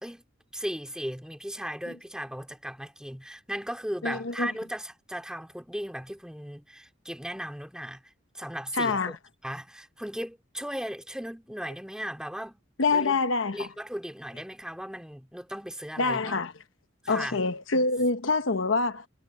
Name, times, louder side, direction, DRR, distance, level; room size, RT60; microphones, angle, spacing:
voice 1, 0.5-8.0 8.3-9.1 9.4-12.6 12.9-13.1 13.5-16.4 17.0-17.4, equal, 5° right, 2.8 m, -37 dB
voice 2, 4.0-4.5 8.7-9.2 12.8-13.7 16.0-16.5 17.1-19.1, left 3 dB, 75° left, 1.0 m, -26 dB
head